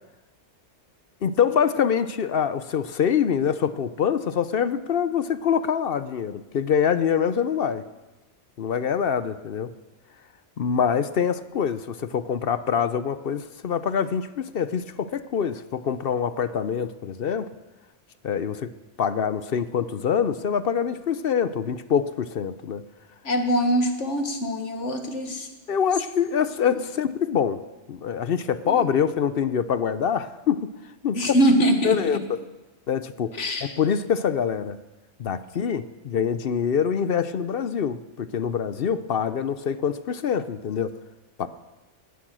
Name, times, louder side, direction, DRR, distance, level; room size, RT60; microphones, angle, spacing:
voice 1, 1.2-7.8 8.6-9.7 10.6-17.5 18.2-18.7 19.0-22.8 25.7-27.6 27.9-30.7 31.0-31.4 31.8-32.4 32.9-34.8 35.2-40.9 41.4-41.5, left 7 dB, 60° left, 13 dB, 0.8 m, -25 dB
voice 2, 23.2-25.5 26.7-26.8 28.6-28.9 31.2-32.2 33.4-33.7, equal, 80° left, 5 dB, 2.1 m, -23 dB
18.0 x 12.0 x 6.2 m, 1.1 s
omnidirectional pair, 1.2 m